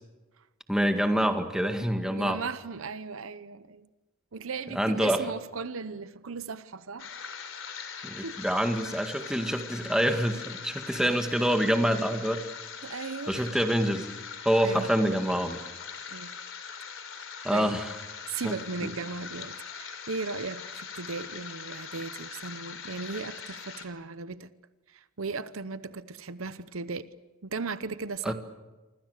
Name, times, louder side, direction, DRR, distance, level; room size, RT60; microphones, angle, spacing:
voice 1, 0.7-2.4 4.8-5.2 8.0-12.4 13.3-14.1 14.5-15.6 17.4-17.9 18.4-18.6 28.2-28.3, equal, 5° right, 1.8 m, -26 dB
voice 2, 2.0-3.9 4.3-7.1 8.2-8.4 12.8-13.5 14.6-14.9 16.1-16.3 17.5-17.8 18.3-24.5 24.9-27.1 27.4-28.3, right 4 dB, 70° right, 0.8 m, -37 dB
sound 1, 7.0-23.8, left 6 dB, 65° left, 3.9 m, -41 dB
28.0 x 25.0 x 6.6 m
head